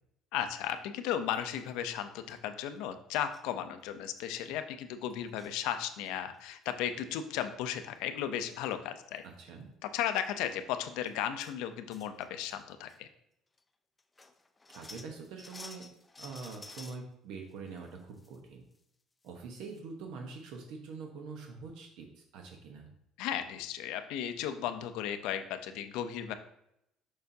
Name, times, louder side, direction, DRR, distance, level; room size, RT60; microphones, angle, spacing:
voice 1, 0.3-9.2 9.8-13.1 23.2-26.3, left 10 dB, 80° left, 9 dB, 0.5 m, -35 dB
sound 1, 1.3-1.7 2.3-2.4 3.3-3.5 3.9-4.0 4.2-4.4 5.1-5.6 6.0-6.4 8.1-8.2 8.5-8.7 9.2-9.3 10.0-10.2 10.6-10.7 11.1-11.6 11.9-12.6 12.9-13.0 13.6-13.7 14.0-17.0 17.5-18.4 18.7-18.8 19.2-19.3 19.6-19.8, left 3 dB, 15° left, 0.4 m, -52 dB
voice 2, 14.7-15.9 16.2-18.6 19.2-22.9, right 4 dB, 75° right, 2 dB, 0.9 m, -44 dB
6.7 x 5.6 x 2.7 m, 0.78 s
cardioid pair, 140°, 0 cm